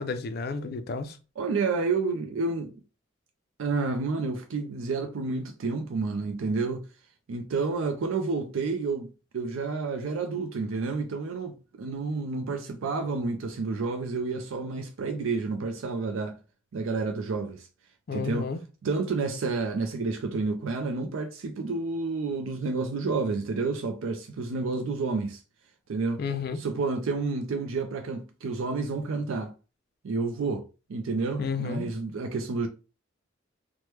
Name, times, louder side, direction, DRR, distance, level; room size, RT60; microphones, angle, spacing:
voice 1, 0.0-1.2 18.1-18.6 26.2-26.6 31.4-31.9, left 5 dB, 50° left, 0.4 m, -31 dB
voice 2, 1.4-2.7 3.6-6.9 7.3-9.1 9.3-16.4 16.7-17.7 18.1-18.5 18.8-25.4 25.9-26.2 26.6-29.5 30.0-32.7, right 4 dB, 85° right, 0.4 m, -30 dB
2.9 x 2.1 x 3.2 m
head